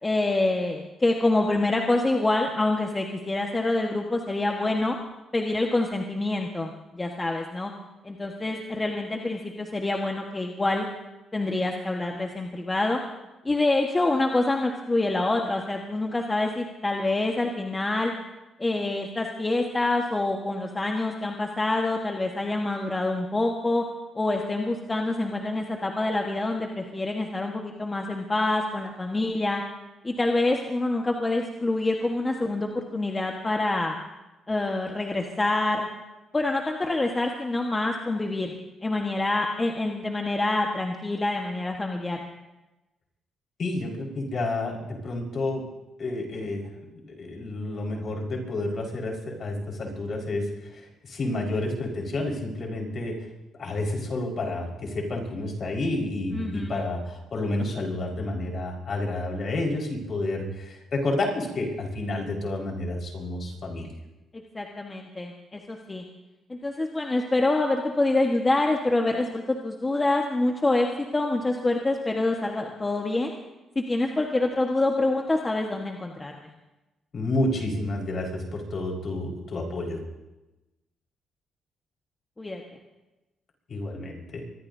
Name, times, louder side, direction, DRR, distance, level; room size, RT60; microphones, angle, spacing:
voice 1, 0.0-5.0 5.3-7.7 8.0-10.9 11.3-13.0 13.4-18.1 18.6-23.8 24.1-29.6 30.0-33.9 34.5-35.9 36.3-38.5 38.8-42.2 56.3-56.8 64.5-66.0 66.5-70.9 71.1-73.3 73.7-76.4 82.4-82.6, left 2 dB, 20° left, 1 dB, 1.4 m, -26 dB
voice 2, 43.6-45.7 46.0-46.7 47.0-50.5 51.0-53.2 53.6-63.9 77.1-80.0 83.7-84.4, left 2 dB, 50° left, -1 dB, 4.9 m, -30 dB
24.5 x 21.0 x 2.8 m, 1.0 s
cardioid pair, 90°, 0 cm